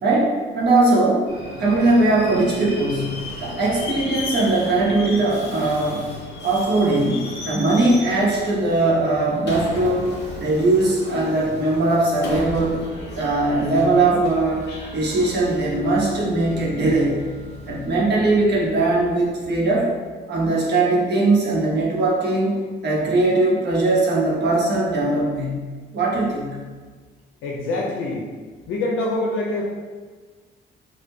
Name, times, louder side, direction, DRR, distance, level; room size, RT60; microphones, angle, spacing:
voice 1, 0.0-1.3 1.6-6.0 6.4-10.1 10.4-12.8 13.2-14.6 14.9-17.2 17.7-19.9 20.3-22.5 22.8-25.6 25.9-26.6, right 2 dB, 60° right, -4 dB, 0.9 m, -20 dB
Subway metro underground, 1.3-19.7, left 2 dB, 60° left, 0.9 m, -35 dB
voice 2, 27.4-28.3 28.7-29.7, left 2 dB, 85° left, -2 dB, 0.5 m, -25 dB
3.4 x 2.2 x 3.2 m, 1.4 s
cardioid pair, 90°, 20 cm